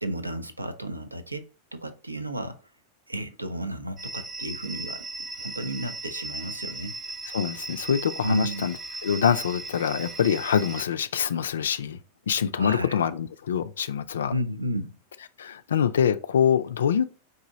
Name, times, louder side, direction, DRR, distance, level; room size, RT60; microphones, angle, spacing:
voice 1, 0.0-2.7 3.1-5.0 5.4-7.0 8.2-8.7 12.6-13.0 14.3-15.0, equal, 85° right, 0.5 m, -32 dB
sound 1, 4.0-10.9, right 2 dB, 20° right, 0.7 m, -37 dB
voice 2, 7.3-8.7 9.0-12.0 12.3-14.3 15.4-17.0, left 8 dB, 65° left, 0.3 m, -25 dB
4.9 x 2.6 x 4.0 m
figure-of-eight pair, 90°, 0 cm